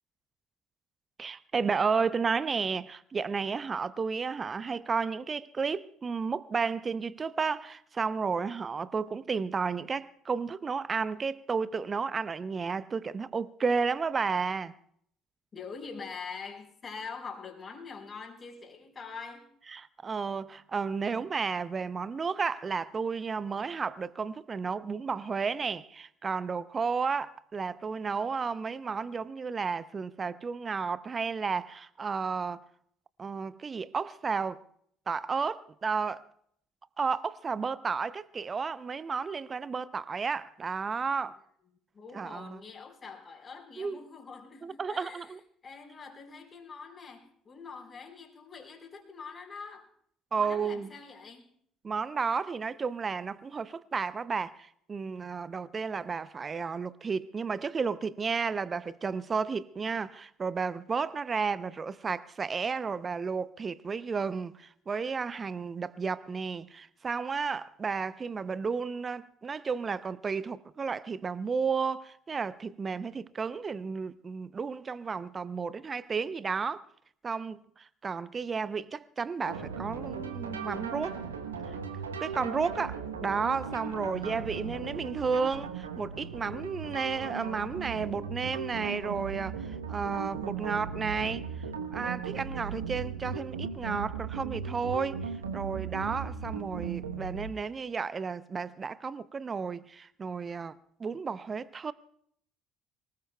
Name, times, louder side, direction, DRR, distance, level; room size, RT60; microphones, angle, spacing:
voice 1, 1.2-14.7 19.7-32.6 33.2-34.6 35.1-36.3 37.0-41.4 42.1-42.6 43.8-44.0 44.6-45.4 50.3-50.9 51.8-76.9 77.2-81.2 81.6-81.8 82.2-91.5 91.9-101.9, right 5 dB, 35° right, 0.6 m, -32 dB
voice 2, 15.5-19.5 41.9-45.4 45.6-49.9 50.3-51.5, left 5 dB, 35° left, 4.1 m, -44 dB
sound 1, 79.5-97.5, right 6 dB, 85° right, 1.0 m, -37 dB
24.5 x 19.0 x 2.3 m
figure-of-eight pair, 55°, 0 cm